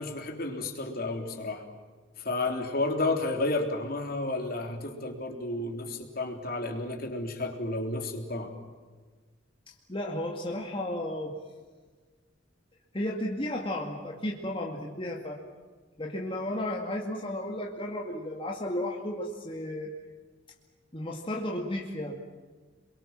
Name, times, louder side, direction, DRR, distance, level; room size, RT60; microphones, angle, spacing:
voice 1, 0.0-1.6 2.2-8.5, left 2 dB, 55° left, 3 dB, 3.5 m, -31 dB
voice 2, 9.7-11.4 12.9-15.4 16.0-19.9 20.9-22.2, left 1 dB, 30° left, 0 dB, 2.3 m, -33 dB
28.0 x 23.0 x 7.5 m, 1.4 s
head